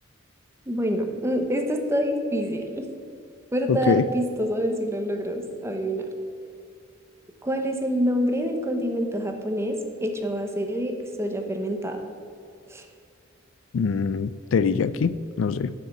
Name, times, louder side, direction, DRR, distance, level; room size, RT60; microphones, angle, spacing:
voice 1, 0.7-2.9 3.5-6.1 7.4-12.0 12.7-12.8, equal, 15° right, 4 dB, 0.9 m, -26 dB
voice 2, 3.7-4.0 13.7-15.7, left 5 dB, 75° left, 16 dB, 0.4 m, -23 dB
7.8 x 6.6 x 7.3 m, 2.3 s
head